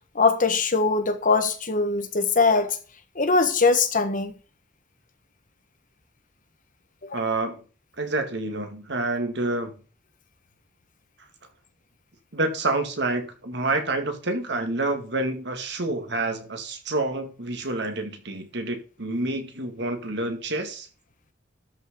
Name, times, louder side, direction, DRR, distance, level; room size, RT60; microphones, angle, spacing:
voice 1, 0.1-2.8 3.2-4.3 7.1-7.2, left 4 dB, 45° left, 1.4 m, -21 dB
voice 2, 7.1-7.6 8.0-9.7 12.3-20.9, right 2 dB, 65° right, 2.2 m, -28 dB
12.5 x 6.5 x 3.9 m
head